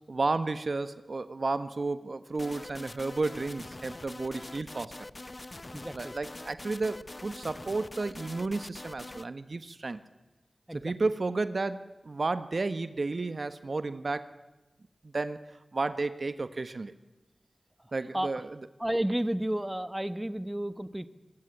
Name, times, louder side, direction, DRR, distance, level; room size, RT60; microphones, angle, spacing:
voice 1, 0.1-4.9 5.9-10.0 10.7-14.3 15.0-15.4 15.7-16.9 17.9-18.6, right 3 dB, 60° right, 12 dB, 1.3 m, -32 dB
sound 1, 2.3-9.2, left 2 dB, 40° left, 0.8 m, -44 dB
voice 2, 5.7-6.1 10.7-10.9 18.1-18.3 18.8-21.1, right 1 dB, 15° right, 13 dB, 1.3 m, -31 dB
26.0 x 20.5 x 9.9 m, 1.1 s
cardioid pair, 45°, 0 cm